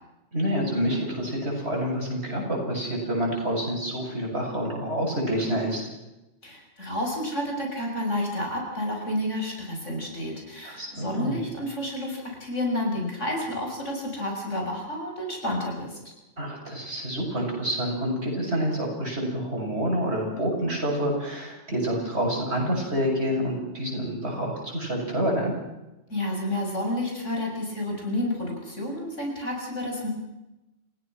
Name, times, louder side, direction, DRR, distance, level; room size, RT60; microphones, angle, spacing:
voice 1, 0.3-5.9 10.6-11.4 16.4-25.5, equal, 65° right, -1 dB, 7.7 m, -28 dB
voice 2, 6.4-16.0 26.1-30.1, left 1 dB, 85° left, 1 dB, 7.1 m, -30 dB
30.0 x 16.5 x 6.2 m, 0.99 s
omnidirectional pair, 1.2 m